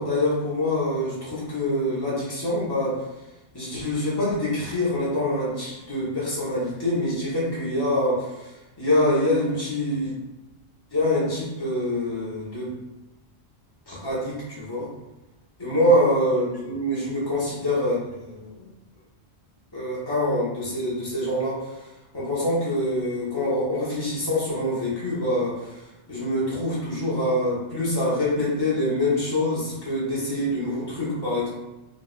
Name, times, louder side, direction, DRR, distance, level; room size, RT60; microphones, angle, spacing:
voice 1, 0.0-3.0 3.5-8.5 8.8-10.1 10.9-12.7 13.9-14.9 15.6-18.7 19.7-21.7 22.1-25.8 26.1-31.5, left 1 dB, 20° left, -7 dB, 1.0 m, -25 dB
3.9 x 2.6 x 2.4 m, 1.0 s
omnidirectional pair, 1.1 m